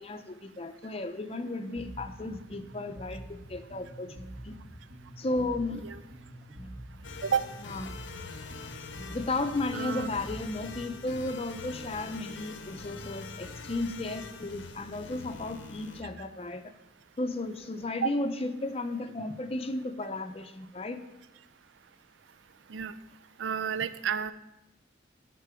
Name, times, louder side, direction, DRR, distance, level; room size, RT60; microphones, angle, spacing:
voice 1, 0.1-4.1 4.4-4.5 5.2-5.8 7.6-7.9 9.1-16.6 17.2-21.0, left 2 dB, 30° left, 8 dB, 0.5 m, -34 dB
Bass guitar, 1.8-11.3, equal, 50° right, 1.4 m, -46 dB
sound 1, 7.0-16.0, left 4 dB, 90° left, 0.7 m, -44 dB
voice 2, 9.7-10.1 18.0-18.1 22.7-22.9 23.4-24.3, right 7 dB, 90° right, 13 dB, 0.4 m, -30 dB
11.5 x 3.8 x 4.9 m, 0.96 s
head